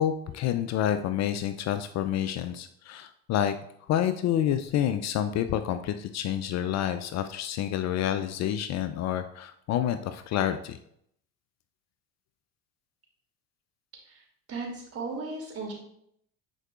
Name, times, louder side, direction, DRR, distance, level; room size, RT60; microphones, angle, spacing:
voice 1, 0.0-3.6 3.9-10.8, left 10 dB, 45° left, 10 dB, 0.5 m, -28 dB
voice 2, 14.0-15.7, right 3 dB, 35° right, -1 dB, 2.7 m, -36 dB
9.9 x 4.6 x 2.4 m, 0.71 s
hypercardioid pair, 80°, 39 cm